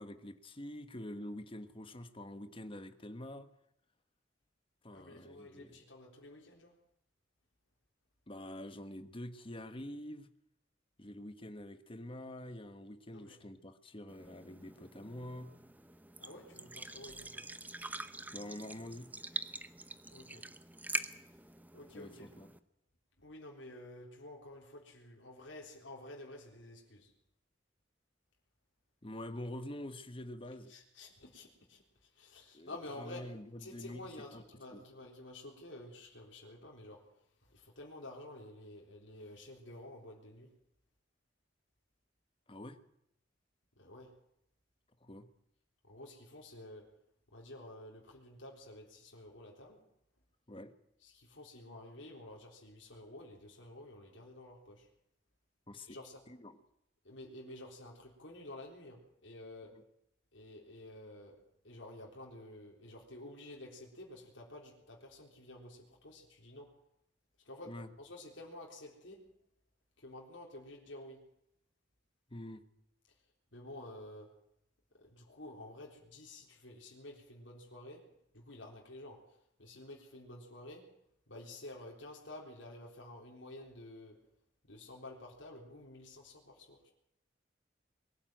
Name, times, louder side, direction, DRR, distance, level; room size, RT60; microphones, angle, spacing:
voice 1, 0.0-3.5 4.8-5.8 8.3-10.3 11.0-15.5 18.3-19.1 21.9-22.5 29.0-30.7 32.5-34.4 34.7-34.9 42.5-42.8 45.0-45.3 50.5-50.7 55.7-56.0 56.3-56.6 59.7-59.8 67.6-67.9 72.3-72.6, left 1 dB, 30° left, 9 dB, 1.3 m, -46 dB
voice 2, 4.9-6.7 13.1-13.4 16.2-17.5 20.1-20.5 21.7-22.3 23.2-27.1 30.7-31.8 32.2-33.3 33.6-37.0 37.5-40.5 43.8-44.1 45.9-46.9 47.3-49.8 51.0-54.9 55.9-56.2 57.0-59.8 60.3-66.7 67.5-69.2 70.0-71.2 73.5-74.3 75.0-78.1 78.3-79.3 79.6-80.9 81.3-84.2 84.7-86.9, left 1 dB, 80° left, -1 dB, 3.8 m, -51 dB
sound 1, 14.1-22.6, right 2 dB, 10° right, 0.8 m, -45 dB
22.5 x 12.5 x 9.1 m, 0.77 s
head